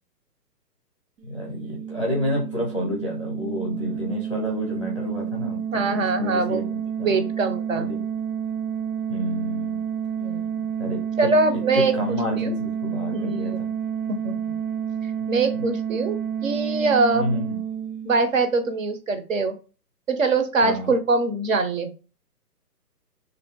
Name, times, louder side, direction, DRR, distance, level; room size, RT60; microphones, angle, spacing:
sound 1, 1.2-18.7, right 8 dB, 90° right, 0.9 m, -30 dB
voice 1, 1.3-7.3 7.8-8.0 9.1-9.8 10.8-11.3 11.7-13.7 17.1-17.6 20.6-20.9, left 1 dB, 20° left, -2 dB, 0.6 m, -29 dB
voice 2, 5.7-6.6 7.0-7.9 10.2-10.7 11.2-12.5 13.1-13.6 14.1-14.4 15.0-16.2 16.4-17.3 18.0-19.6 20.1-21.9, right 3 dB, 50° right, 8 dB, 0.7 m, -23 dB
3.2 x 2.6 x 4.5 m, 0.35 s
hypercardioid pair, 170°, 49 cm